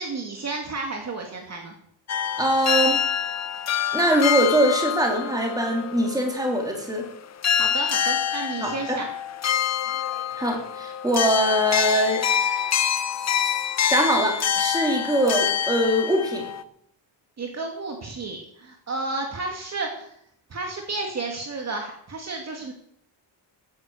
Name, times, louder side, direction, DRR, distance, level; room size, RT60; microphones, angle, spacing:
voice 1, 0.0-1.7 7.5-9.1 17.4-20.1 20.5-22.7, right 3 dB, 35° right, 2 dB, 2.3 m, -32 dB
sound 1, 2.1-7.1 7.4-16.6, left 8 dB, 35° left, 0.6 m, -26 dB
voice 2, 2.4-3.0 3.9-7.0 8.6-9.0 10.4-12.3 13.9-16.5, right 1 dB, 10° right, 0 dB, 3.4 m, -22 dB
15.5 x 10.0 x 6.6 m, 0.68 s
wide cardioid pair, 170°, 47 cm